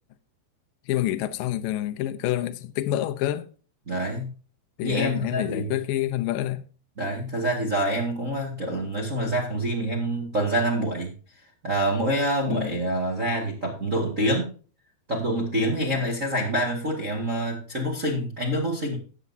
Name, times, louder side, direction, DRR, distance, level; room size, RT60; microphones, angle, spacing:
voice 1, 0.9-3.5 4.8-6.6 12.5-12.8, left 13 dB, 85° left, 2.0 m, -27 dB
voice 2, 3.9-4.3 4.8-5.7 7.0-11.1 11.6-14.5 15.1-19.0, right 1 dB, 65° right, 0.7 m, -26 dB
18.0 x 7.3 x 2.7 m
omnidirectional pair, 5.0 m